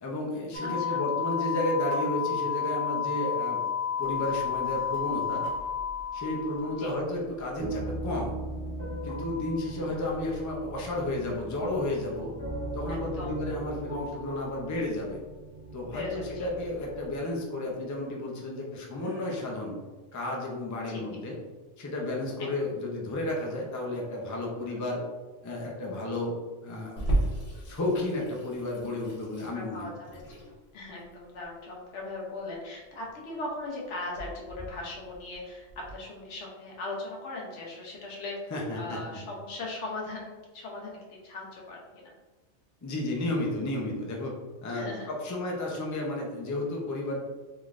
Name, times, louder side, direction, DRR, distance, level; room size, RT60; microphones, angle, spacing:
voice 1, 0.0-3.6 4.0-5.5 6.1-8.3 9.0-12.3 12.7-15.2 15.7-19.8 20.1-21.4 21.8-25.0 25.4-27.2 27.6-29.9 38.5-39.0 42.8-44.3 44.6-47.2, left 1 dB, 30° left, -2 dB, 0.3 m, -32 dB
sound 1, 0.5-6.9, left 7 dB, 30° right, 0.9 m, -31 dB
voice 2, 0.6-1.0 4.1-4.4 6.8-7.0 9.8-10.1 12.9-13.4 15.9-16.5 18.9-19.3 20.8-21.0 22.4-22.7 24.7-24.9 29.5-30.4 30.7-38.4 38.8-42.1 44.7-45.4, left 2 dB, 85° left, -2 dB, 1.2 m, -39 dB
Slow Piano Chords with High Notes, 7.6-17.2, right 1 dB, 55° right, 1.4 m, -39 dB
Water tap faucet / Sink (filling or washing), 27.0-36.0, right 1 dB, 65° left, 1.1 m, -36 dB
3.6 x 3.2 x 2.4 m, 1.3 s
omnidirectional pair, 1.2 m